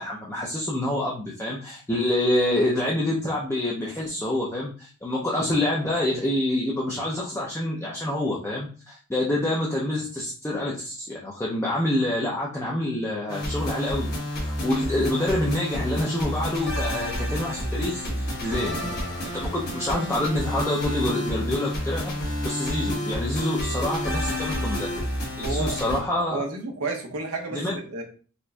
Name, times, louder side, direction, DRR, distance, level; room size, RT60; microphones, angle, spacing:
voice 1, 0.0-19.0 19.3-24.9 25.4-26.4 27.5-27.8, left 1 dB, 10° left, 0.4 m, -27 dB
sound 1, 13.3-26.0, equal, 45° left, 1.1 m, -29 dB
voice 2, 25.3-25.8 26.3-28.0, right 3 dB, 80° right, 0.7 m, -31 dB
4.2 x 2.5 x 2.2 m
head